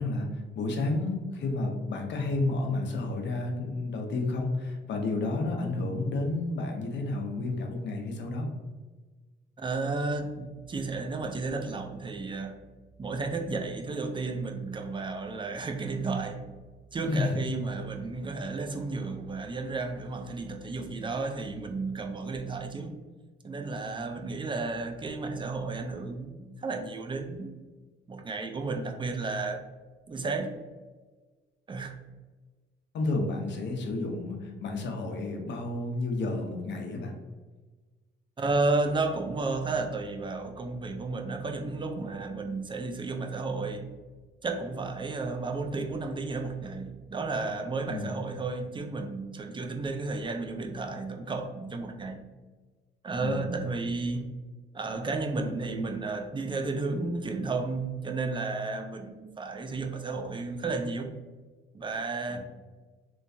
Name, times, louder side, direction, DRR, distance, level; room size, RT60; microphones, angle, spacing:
voice 1, 0.0-8.5 17.0-17.4 32.9-37.1 45.8-45.9 47.9-48.1 53.2-53.5 62.3-62.4, left 2 dB, 65° left, 3 dB, 0.7 m, -31 dB
voice 2, 9.6-12.7 13.0-16.5 16.9-23.0 23.4-27.5 28.1-29.6 30.1-30.5 31.7-32.0 38.4-43.9 44.4-52.2 53.0-54.3 54.7-61.1 61.7-62.4, right 3 dB, 25° right, 4 dB, 0.4 m, -32 dB
3.2 x 3.0 x 2.7 m, 1.3 s
cardioid pair, 90°, 20 cm